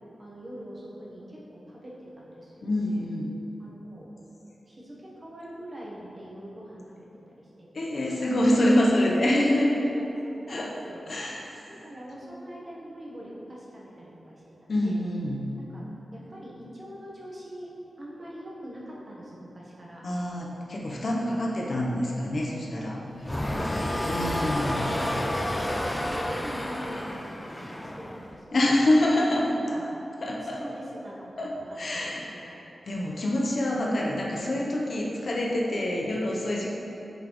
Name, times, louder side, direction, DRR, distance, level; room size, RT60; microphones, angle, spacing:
voice 1, 0.2-3.0 3.6-4.1 4.6-8.4 9.9-11.0 11.4-14.4 14.8-15.0 15.7-17.7 18.0-20.0 22.4-22.5 23.2-25.4 25.7-28.6 29.2-30.2 30.6-32.6 33.2-33.3 35.0-35.7, equal, 30° right, -5 dB, 1.0 m, -43 dB
voice 2, 2.6-3.3 7.7-9.8 10.5-10.7 11.1-11.5 14.7-15.5 20.0-23.5 24.1-24.9 28.5-29.6 30.2-30.6 31.4-36.7, left 1 dB, 50° left, -3 dB, 0.6 m, -26 dB
sound 1, 23.2-28.4, left 1 dB, 10° left, 0.3 m, -30 dB
8.0 x 4.0 x 3.0 m, 3.0 s
wide cardioid pair, 145°, 0 cm